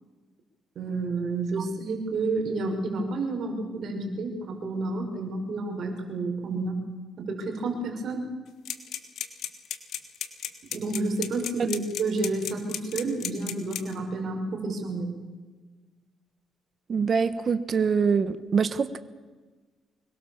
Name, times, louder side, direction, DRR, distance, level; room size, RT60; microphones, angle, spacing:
voice 1, 0.7-6.8 7.2-8.3 10.7-15.1, right 3 dB, 60° right, 3 dB, 6.1 m, -30 dB
sound 1, 8.6-14.0, left 10 dB, 75° left, 2.5 m, -33 dB
voice 2, 16.9-19.0, right 5 dB, 45° right, 12 dB, 1.3 m, -24 dB
25.0 x 22.0 x 7.3 m, 1.4 s
cardioid pair, 90°, 0 cm